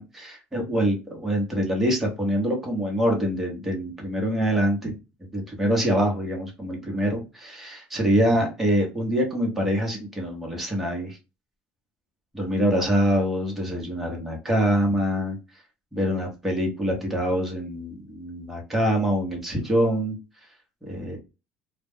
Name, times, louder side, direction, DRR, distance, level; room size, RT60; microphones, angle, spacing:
voice 1, 0.0-4.9 5.3-11.2 12.3-15.4 15.9-20.2 20.8-21.2, equal, 5° right, 0 dB, 0.9 m, -25 dB
2.2 x 2.1 x 3.4 m, 0.28 s
cardioid pair, 155°, 3 cm